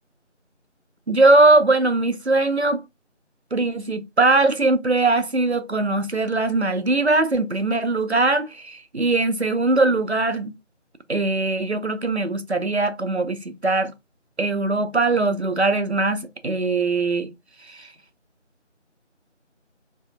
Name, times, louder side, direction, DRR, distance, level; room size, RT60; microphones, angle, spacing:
voice 1, 1.1-2.8 3.5-10.5 11.1-13.9 14.4-17.3 17.7-17.9, right 2 dB, 60° right, 0.6 m, -20 dB
3.6 x 2.7 x 2.2 m
figure-of-eight pair, 180°, 37 cm